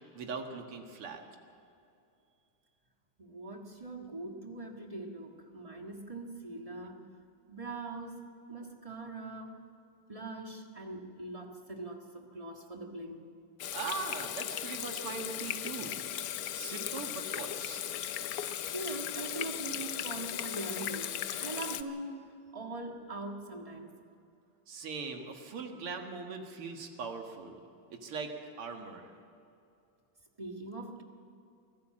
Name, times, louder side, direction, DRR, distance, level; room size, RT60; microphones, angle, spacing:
voice 1, 0.1-1.2 13.7-16.0 16.5-17.9 24.7-27.6 27.9-28.3 28.6-29.1, right 5 dB, 90° right, 4 dB, 2.7 m, -40 dB
voice 2, 3.2-7.1 7.5-9.6 10.1-13.3 18.7-23.9 30.4-31.0, right 2 dB, 20° right, 2 dB, 1.5 m, -42 dB
Water tap faucet / Sink (filling or washing), 13.6-21.8, left 10 dB, 75° left, 0.8 m, -37 dB
24.0 x 14.5 x 7.6 m, 2.6 s
omnidirectional pair, 2.4 m